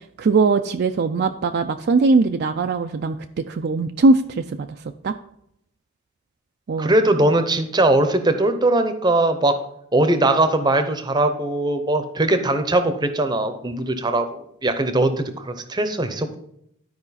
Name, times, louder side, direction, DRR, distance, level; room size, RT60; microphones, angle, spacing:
voice 1, 0.2-4.7 5.0-5.2 6.7-6.9, right 3 dB, 45° right, 6 dB, 0.3 m, -20 dB
voice 2, 6.8-9.6 9.9-16.4, right 2 dB, 20° right, 9 dB, 0.7 m, -20 dB
12.0 x 4.9 x 4.1 m, 0.74 s
head